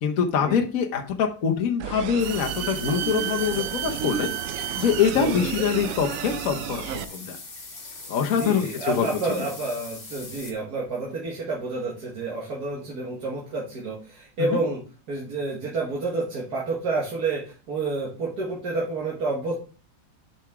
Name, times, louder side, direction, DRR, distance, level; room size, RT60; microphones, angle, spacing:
voice 1, 0.0-4.3 4.8-7.4 8.1-9.1 14.4-14.6, left 7 dB, 55° left, 2 dB, 1.2 m, -24 dB
sound 1, 1.8-7.0, right 11 dB, 90° right, 0.7 m, -31 dB
sound 2, 2.2-10.5, left 3 dB, 30° left, 1.5 m, -41 dB
voice 2, 5.2-5.5 8.3-14.8 15.1-19.5, right 3 dB, 60° right, -3 dB, 2.0 m, -29 dB
7.7 x 6.0 x 3.6 m, 0.38 s
omnidirectional pair, 2.0 m